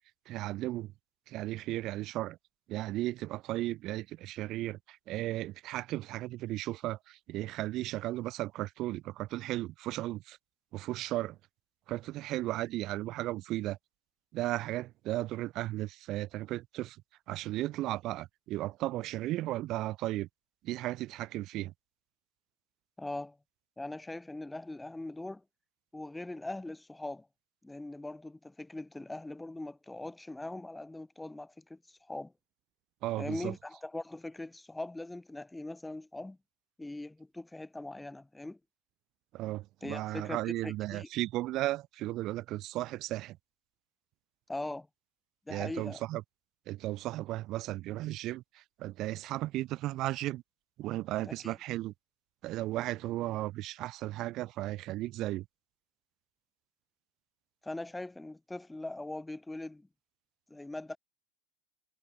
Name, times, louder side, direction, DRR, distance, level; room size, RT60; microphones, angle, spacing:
voice 1, 0.3-0.9 1.3-2.4 2.7-10.4 10.7-11.4 11.9-13.8 14.3-17.0 17.3-20.3 20.6-21.7 33.0-33.5 39.3-43.4 45.5-46.2 46.7-50.4 50.8-51.9 52.4-55.4, right 16 dB, 50° right, 0.9 m, -35 dB
voice 2, 23.0-23.4 23.8-25.4 25.9-27.3 27.6-32.3 33.2-36.4 36.8-38.6 39.8-41.1 44.5-44.9 45.5-46.0 51.2-51.5 57.6-59.9 60.5-61.0, left 2 dB, 10° left, 1.7 m, -41 dB
hypercardioid pair, 100°, 0 cm